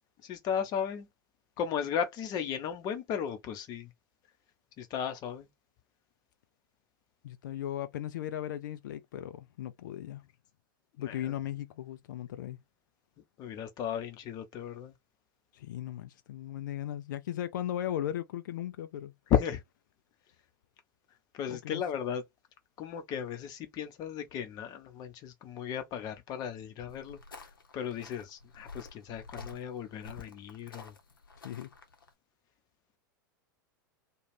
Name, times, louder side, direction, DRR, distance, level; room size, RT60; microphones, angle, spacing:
voice 1, 0.2-1.1 1.6-3.9 4.8-5.5 11.0-11.3 13.4-14.9 19.3-19.6 21.3-22.2 22.8-27.4 27.7-30.9, left 8 dB, 35° left, 0.7 m, -35 dB
voice 2, 7.2-10.2 11.0-12.6 15.5-19.1 21.5-21.8 31.4-31.7, left 11 dB, 60° left, 0.4 m, -37 dB
sound 1, 26.9-32.1, left 3 dB, 75° left, 0.7 m, -50 dB
2.4 x 2.2 x 3.1 m
figure-of-eight pair, 90°, 11 cm